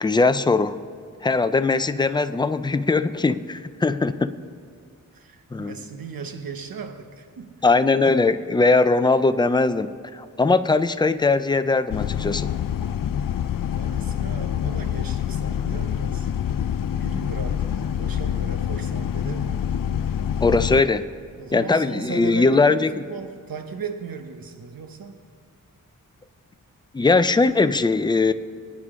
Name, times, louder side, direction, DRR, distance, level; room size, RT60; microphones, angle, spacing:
voice 1, 0.0-0.8 1.2-4.3 5.5-5.8 7.6-12.5 20.4-21.1 21.5-22.9 26.9-28.3, left 3 dB, 15° left, 11 dB, 0.3 m, -20 dB
voice 2, 5.1-7.6 13.8-16.3 17.0-19.7 21.4-22.8 23.1-25.2, right 5 dB, 90° right, 7 dB, 1.0 m, -37 dB
sound 1, 11.9-20.8, left 9 dB, 75° left, 0.5 m, -26 dB
22.0 x 9.6 x 3.7 m, 2.3 s
wide cardioid pair, 130°, 34 cm